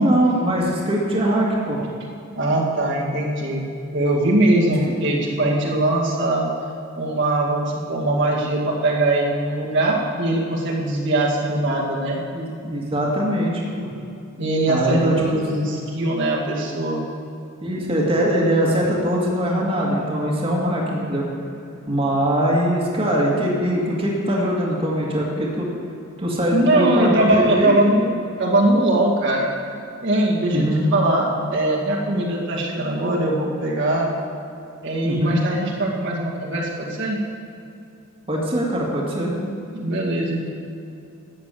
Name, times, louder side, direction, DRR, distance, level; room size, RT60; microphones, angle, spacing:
voice 1, 0.0-1.8 4.9-5.0 12.3-13.9 14.7-15.1 17.6-21.3 21.9-25.7 26.2-27.8 30.5-30.8 35.1-35.4 38.3-39.4, equal, 25° right, -3 dB, 2.0 m, -22 dB
voice 2, 2.3-3.6 3.9-6.5 6.9-12.2 14.4-17.0 26.2-29.5 30.0-34.1 34.8-37.2 39.7-40.5, right 1 dB, 60° right, -3 dB, 2.1 m, -21 dB
13.0 x 8.6 x 7.7 m, 2.6 s
head